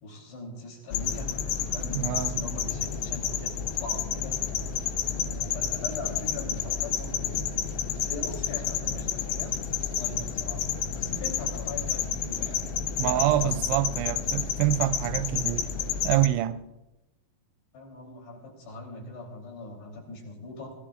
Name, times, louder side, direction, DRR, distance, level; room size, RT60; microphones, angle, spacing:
voice 1, 0.0-1.3 1.7-4.4 5.1-7.6 8.1-10.6 10.9-12.7 13.0-13.8 17.7-20.7, left 2 dB, 70° left, 5.5 m, -41 dB
sound 1, 0.9-16.3, left 8 dB, 90° left, 3.1 m, -30 dB
voice 2, 1.9-2.4 13.0-15.7 16.0-16.6, right 14 dB, 80° right, 2.5 m, -26 dB
25.0 x 17.5 x 2.5 m
omnidirectional pair, 5.1 m